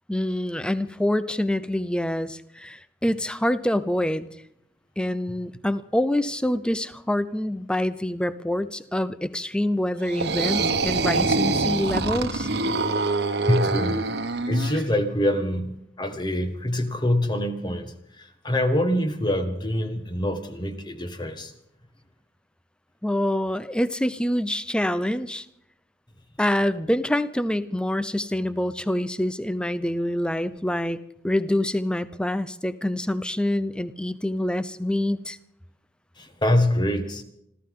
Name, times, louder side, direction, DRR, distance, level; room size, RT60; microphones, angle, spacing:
voice 1, 0.1-4.3 5.0-12.5 23.0-25.5 26.4-31.0 31.2-35.4, left 1 dB, 5° left, 14 dB, 0.6 m, -26 dB
sound 1, 10.0-14.8, right 3 dB, 65° right, 1.3 m, -25 dB
voice 2, 13.5-14.0 14.5-21.5 36.2-37.2, left 1 dB, 25° left, 7 dB, 1.6 m, -25 dB
27.0 x 14.0 x 3.8 m, 0.75 s
head